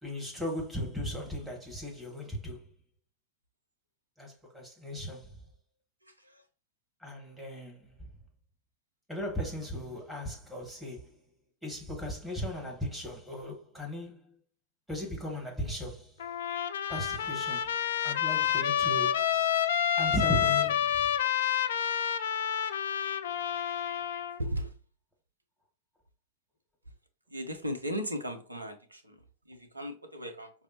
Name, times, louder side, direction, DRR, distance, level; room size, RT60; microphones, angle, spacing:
voice 1, 0.0-2.7 4.2-5.3 7.0-7.9 9.1-11.1 11.6-14.3 14.9-16.2 16.9-17.7 18.0-19.2 20.0-20.9, left 1 dB, ahead, 1.4 m, -37 dB
voice 2, 6.0-6.4 24.4-24.7 27.3-30.5, equal, 80° right, 0.6 m, -37 dB
Trumpet, 16.2-24.4, left 9 dB, 60° left, 0.3 m, -29 dB
5.1 x 2.0 x 2.9 m
figure-of-eight pair, 90°, 0 cm